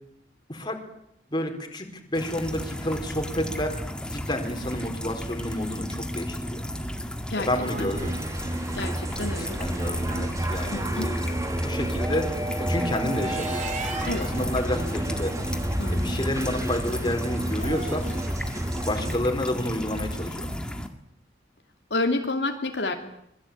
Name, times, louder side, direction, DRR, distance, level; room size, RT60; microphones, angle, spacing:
voice 1, 0.5-0.8 1.3-6.6 7.4-8.1 9.3-11.3 11.6-13.6 14.2-15.4 15.9-18.1 18.8-20.5, left 1 dB, 25° left, 4 dB, 4.5 m, -30 dB
sound 1, 2.1-20.9, equal, 5° left, 2.1 m, -33 dB
sound 2, 7.2-10.3 13.0-14.5 17.5-18.4, right 4 dB, 45° right, 4.5 m, -40 dB
sound 3, 8.0-19.2, right 1 dB, 20° right, 2.0 m, -31 dB
voice 2, 8.7-9.6 10.7-11.1 14.0-14.3 15.8-16.0 21.9-22.9, left 2 dB, 75° left, 3 dB, 2.9 m, -29 dB
26.0 x 21.5 x 8.8 m, 0.75 s
head